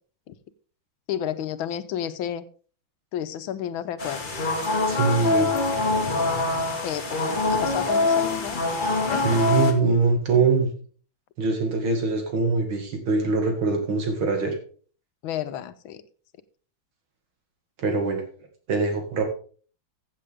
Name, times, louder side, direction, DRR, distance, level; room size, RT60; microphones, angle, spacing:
voice 1, 1.1-2.4 3.1-4.4 5.2-5.6 6.8-7.2 7.5-8.6 9.1-9.4 15.2-16.0, left 10 dB, 85° left, 13 dB, 1.6 m, -31 dB
sound 1, 4.0-9.7, left 3 dB, 25° left, 1.5 m, -24 dB
voice 2, 4.9-5.5 9.1-10.7 11.4-14.6 17.8-18.2 18.7-19.2, right 4 dB, 85° right, 3 dB, 3.0 m, -23 dB
15.0 x 7.4 x 3.6 m, 0.42 s
omnidirectional pair, 2.2 m